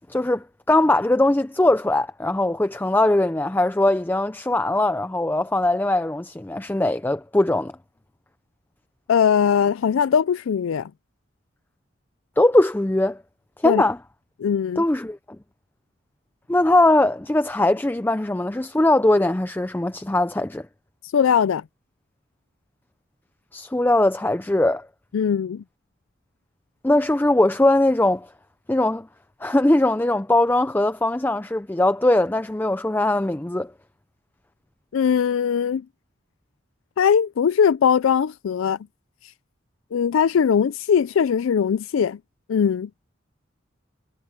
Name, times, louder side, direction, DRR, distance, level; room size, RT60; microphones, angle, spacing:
voice 1, 0.1-7.7 12.4-13.2 13.6-14.0 14.8-15.2 16.5-20.6 23.5-24.9 26.8-28.3 28.7-29.1 29.4-33.7, left 1 dB, 10° left, 0.4 m, -20 dB
voice 2, 9.1-10.9 13.6-13.8 14.4-14.8 21.0-21.6 25.1-25.6 34.9-35.8 37.0-38.8 39.9-42.2 42.5-42.9, left 7 dB, 80° left, 0.4 m, -20 dB
head